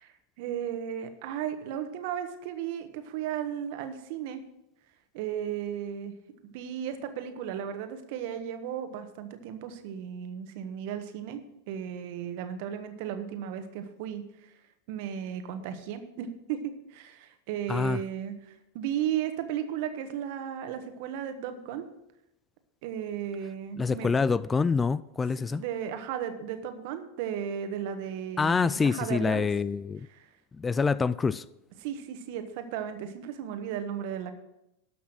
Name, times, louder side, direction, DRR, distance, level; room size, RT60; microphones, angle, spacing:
voice 1, 0.0-4.4 5.1-6.1 6.4-14.5 14.9-21.9 22.8-24.1 25.5-29.5 30.1-30.3 31.8-34.3, right 9 dB, 55° right, 1.3 m, -35 dB
voice 2, 17.7-18.0 23.8-25.6 28.4-30.1 30.5-31.4, left 5 dB, 20° left, 0.3 m, -26 dB
12.5 x 6.0 x 6.1 m
hypercardioid pair, 95°, 0 cm